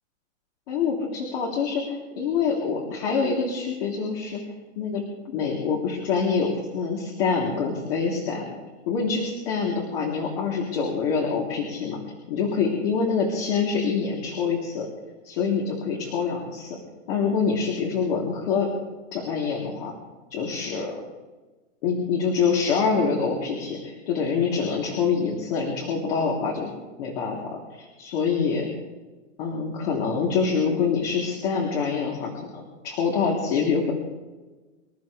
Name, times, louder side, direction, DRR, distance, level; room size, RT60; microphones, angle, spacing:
voice 1, 0.7-4.4 4.7-5.0 5.3-8.6 8.9-12.0 12.3-14.9 15.2-16.8 17.1-18.7 19.1-19.9 20.3-21.0 21.8-26.7 27.0-28.7 29.4-33.9, left 5 dB, 50° left, -2 dB, 3.3 m, -25 dB
26.5 x 13.0 x 3.4 m, 1.2 s
supercardioid pair, 160°, 37 cm